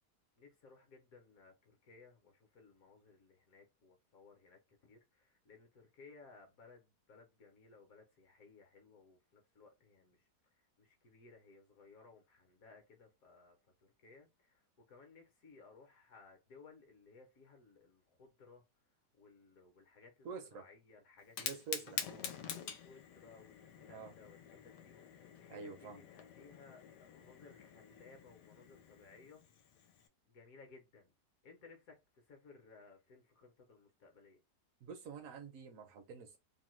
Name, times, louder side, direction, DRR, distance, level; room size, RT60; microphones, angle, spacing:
voice 1, 0.4-18.6 19.1-29.8 30.3-31.1 31.4-34.4, left 4 dB, 65° left, 1.0 m, -61 dB
voice 2, 20.2-20.7 21.4-22.0 23.9-24.1 25.5-26.0 34.8-36.4, right 6 dB, 70° right, 0.8 m, -47 dB
Fire, 21.2-30.1, left 7 dB, 80° left, 1.2 m, -48 dB
2.9 x 2.1 x 3.0 m
omnidirectional pair, 1.8 m